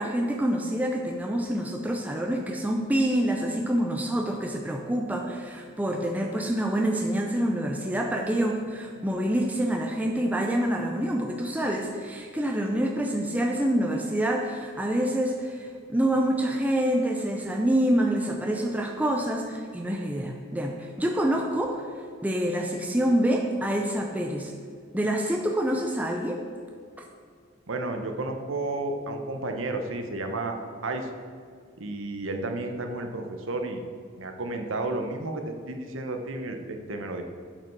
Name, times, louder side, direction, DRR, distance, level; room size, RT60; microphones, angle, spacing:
voice 1, 0.0-21.9 22.2-24.5 24.9-26.4, right 1 dB, 10° right, 1 dB, 0.5 m, -26 dB
voice 2, 27.7-30.6 30.8-31.1 31.8-33.8 34.2-37.2, right 2 dB, 70° right, 4 dB, 1.0 m, -32 dB
8.7 x 5.4 x 6.0 m, 2.1 s
head